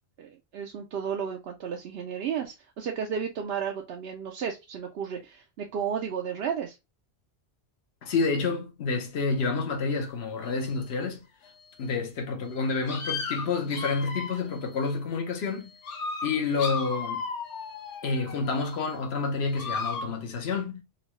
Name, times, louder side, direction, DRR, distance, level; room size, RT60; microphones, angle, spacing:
voice 1, 0.2-6.8, right 7 dB, 65° right, 0.8 m, -33 dB
voice 2, 8.0-11.2 11.8-15.7 16.2-17.2 18.0-20.8, left 4 dB, 65° left, 1.1 m, -29 dB
sound 1, 10.4-10.5 11.4-11.5 12.5-12.6 12.9-14.6 15.5-15.6 15.8-18.6 19.5-20.1, left 4 dB, 80° left, 1.1 m, -35 dB
4.0 x 2.3 x 2.9 m
omnidirectional pair, 1.2 m